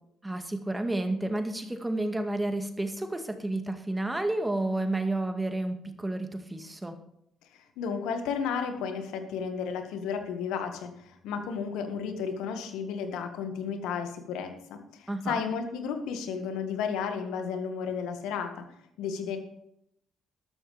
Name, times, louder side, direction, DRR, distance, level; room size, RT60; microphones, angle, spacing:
voice 1, 0.2-7.0 15.1-15.4, right 2 dB, 15° right, 6 dB, 1.9 m, -31 dB
voice 2, 7.5-18.7 19.0-19.4, left 6 dB, 80° left, 6 dB, 1.8 m, -33 dB
13.0 x 12.5 x 3.4 m, 0.75 s
hypercardioid pair, 50°, 0 cm